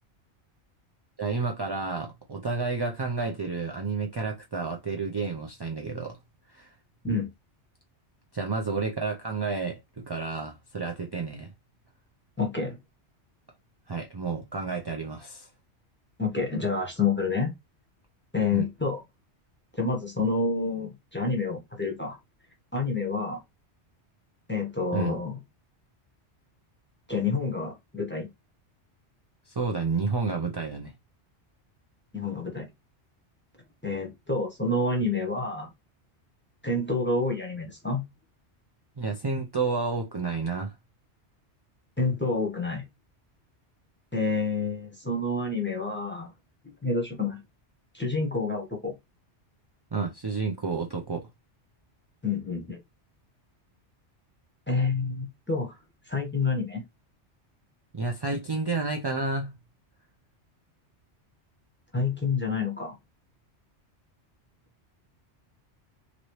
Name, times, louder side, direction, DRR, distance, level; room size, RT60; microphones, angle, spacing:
voice 1, 1.2-6.2 6.5-6.7 8.3-11.5 13.9-15.5 18.5-18.6 24.9-25.2 29.5-30.9 39.0-40.7 49.9-51.3 57.9-59.6, right 4 dB, 40° right, 0.3 m, -30 dB
voice 2, 12.4-12.8 16.2-17.5 18.3-19.0 19.8-22.2 22.7-23.4 24.5-25.4 27.1-28.3 32.1-32.7 33.8-35.7 36.6-38.0 42.0-42.8 44.1-46.3 46.8-47.4 47.9-48.9 52.2-52.8 54.7-55.8 56.1-56.8 61.9-62.9, left 3 dB, 10° left, 0.8 m, -28 dB
3.0 x 2.7 x 3.1 m
omnidirectional pair, 1.2 m